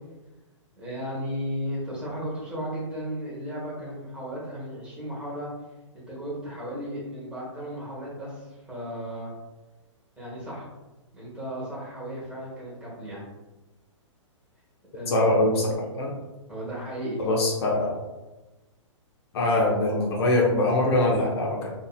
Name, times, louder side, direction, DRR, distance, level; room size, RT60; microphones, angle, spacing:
voice 1, 0.8-5.5 6.1-9.3 10.2-10.7 11.1-13.2 14.9-15.4 16.5-17.2, equal, 5° right, -7 dB, 1.3 m, -35 dB
voice 2, 15.1-16.1 17.2-17.9 19.3-21.7, left 2 dB, 50° left, -2 dB, 0.6 m, -23 dB
2.8 x 2.6 x 2.3 m, 1.1 s
hypercardioid pair, 125°, 16 cm